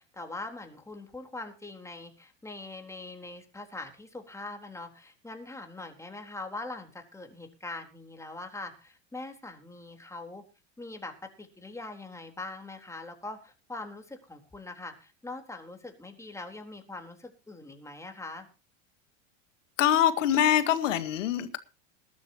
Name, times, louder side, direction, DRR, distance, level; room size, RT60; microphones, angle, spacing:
voice 1, 0.0-10.4 10.8-18.5, left 2 dB, 10° left, 3.9 m, -42 dB
voice 2, 19.8-21.6, left 11 dB, 75° left, 2.0 m, -24 dB
20.5 x 12.5 x 3.0 m
hypercardioid pair, 85°, 38 cm